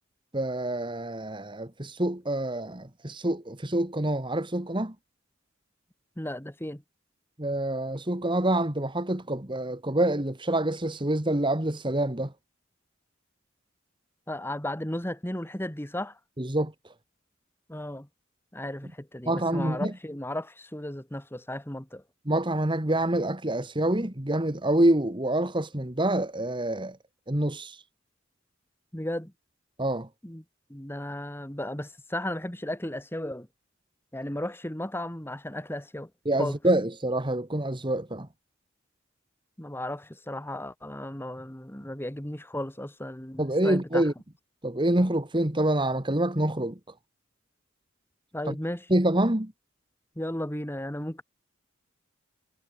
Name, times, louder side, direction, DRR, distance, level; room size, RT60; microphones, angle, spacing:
voice 1, 0.3-4.9 7.4-12.3 16.4-16.7 19.3-19.9 22.3-27.0 27.3-27.8 29.8-30.1 36.3-38.3 43.4-44.1 44.6-46.8 48.5-48.6 48.9-49.5, right 1 dB, 25° right, 1.9 m, -26 dB
voice 2, 6.2-6.8 14.3-16.2 17.7-18.1 18.5-22.0 28.9-29.3 30.2-30.4 30.7-33.5 34.1-36.1 36.4-36.6 39.6-44.1 48.3-48.9 50.2-51.2, left 1 dB, 10° left, 1.9 m, -35 dB
head